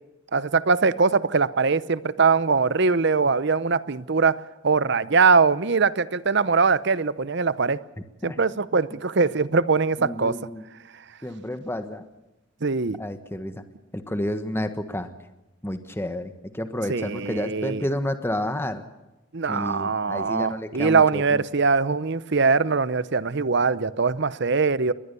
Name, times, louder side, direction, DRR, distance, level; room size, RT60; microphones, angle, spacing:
voice 1, 0.3-4.4 4.6-7.8 8.2-10.4 12.6-13.0 16.9-17.8 19.3-24.9, right 4 dB, 55° right, 16 dB, 0.8 m, -22 dB
voice 2, 10.0-10.6 11.2-12.0 13.0-13.6 13.9-15.1 15.6-18.8 19.5-21.4, left 1 dB, 10° left, 8 dB, 1.4 m, -30 dB
22.5 x 19.5 x 6.9 m, 1.0 s
head